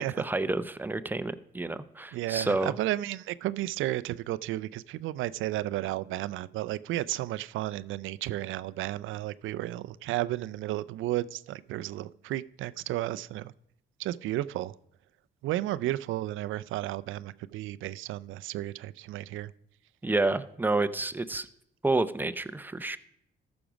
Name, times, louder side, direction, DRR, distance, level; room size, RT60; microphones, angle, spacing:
voice 1, 0.0-2.7 20.0-21.5 21.8-23.0, right 2 dB, 10° right, 13 dB, 0.5 m, -29 dB
voice 2, 2.1-13.5 14.0-14.7 15.4-19.5, right 15 dB, 80° right, 17 dB, 0.4 m, -33 dB
13.5 x 6.1 x 5.0 m, 0.75 s
cardioid pair, 90°, 20 cm